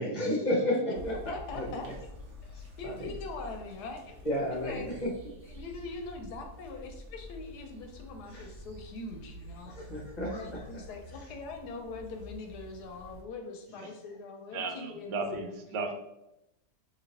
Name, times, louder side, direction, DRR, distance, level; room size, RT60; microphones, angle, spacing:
voice 1, 0.0-0.8 1.0-1.1 1.5-1.8 2.8-3.1 4.2-5.1 8.3-8.5 9.7-10.6, left 1 dB, 35° left, -3 dB, 0.7 m, -31 dB
sound 1, 0.9-13.2, left 1 dB, 55° right, 1.0 m, -48 dB
voice 2, 1.3-1.9 2.4-4.2 4.5-4.9 5.4-9.8 10.2-15.2, left 3 dB, 75° left, 4 dB, 1.1 m, -42 dB
voice 3, 14.5-15.9, right 3 dB, 90° right, 4 dB, 1.3 m, -35 dB
3.0 x 2.8 x 4.0 m, 0.88 s
omnidirectional pair, 1.8 m